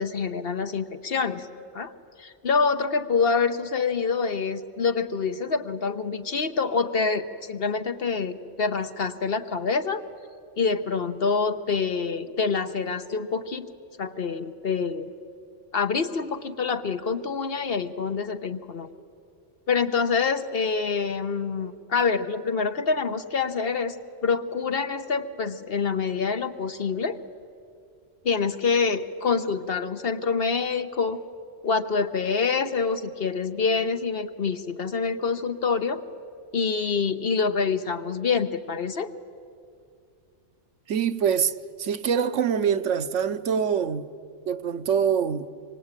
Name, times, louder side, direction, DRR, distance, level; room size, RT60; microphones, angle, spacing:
voice 1, 0.0-1.5 1.7-1.9 2.2-10.0 10.6-13.7 14.0-15.1 15.7-18.9 19.7-24.0 24.2-27.2 28.2-31.2 31.6-36.0 36.5-39.1, left 5 dB, 55° left, 1.3 m, -26 dB
voice 2, 40.9-44.1 44.5-45.5, right 7 dB, 85° right, 1.2 m, -24 dB
26.0 x 24.5 x 9.0 m
omnidirectional pair, 1.2 m